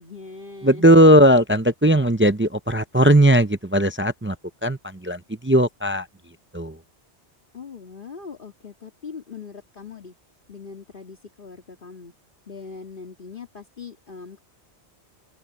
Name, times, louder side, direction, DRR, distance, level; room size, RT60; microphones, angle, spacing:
voice 1, 0.0-0.8 7.5-10.1 10.5-12.1 12.5-14.4, left 5 dB, 50° left, 2.4 m, -40 dB
voice 2, 0.6-4.4 4.6-6.1 6.5-6.8, equal, 15° right, 0.4 m, -17 dB
open air
omnidirectional pair, 1.1 m